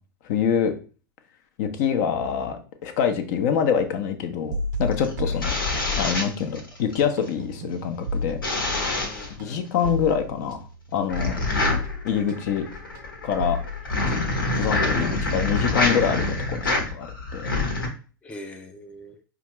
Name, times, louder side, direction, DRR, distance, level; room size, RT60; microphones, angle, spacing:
voice 1, 0.2-0.7 1.6-5.5 6.0-8.4 9.4-10.6 10.9-11.4 12.0-12.7 13.2-13.6 14.5-17.1 17.3-17.5, left 7 dB, 50° left, 7 dB, 0.7 m, -25 dB
sound 1, 4.5-6.2 6.5-15.2, left 1 dB, 60° right, 0.5 m, -33 dB
sound 2, 4.9-7.0 8.4-9.3 11.1-17.9, left 2 dB, 80° left, 1.2 m, -26 dB
voice 2, 9.1-9.9 14.9-15.3 18.2-19.2, left 1 dB, 10° left, 5 dB, 0.4 m, -42 dB
5.0 x 2.4 x 3.0 m, 0.36 s
hypercardioid pair, 100°, 11 cm